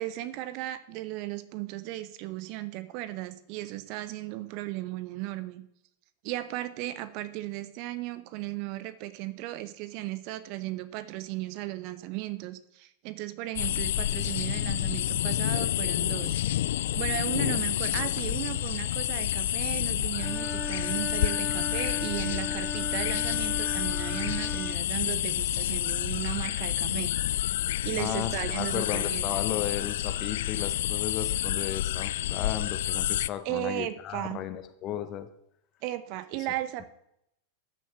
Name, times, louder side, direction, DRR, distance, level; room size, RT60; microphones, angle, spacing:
voice 1, 0.0-5.6 6.2-16.4 16.9-27.1 27.7-29.2 33.4-34.4 35.8-36.8, right 16 dB, 45° right, 14 dB, 0.9 m, -36 dB
sound 1, 13.6-33.3, left 13 dB, 55° left, 0.3 m, -29 dB
Wind instrument woodwind instrument, 20.2-24.8, left 1 dB, ahead, 1.2 m, -37 dB
voice 2, 28.0-35.3 36.8-36.9, left 11 dB, 35° left, 10 dB, 1.0 m, -35 dB
13.0 x 6.9 x 5.9 m, 0.77 s
figure-of-eight pair, 90°, 0 cm